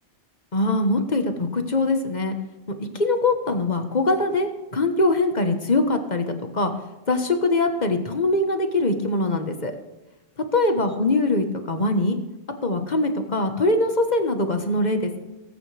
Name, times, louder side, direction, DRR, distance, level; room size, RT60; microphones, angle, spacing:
voice 1, 0.5-2.4 2.8-6.7 7.1-9.7 10.5-12.2 12.6-15.2, left 2 dB, 40° left, 6 dB, 1.4 m, -22 dB
19.5 x 9.3 x 3.4 m, 1.1 s
omnidirectional pair, 1.1 m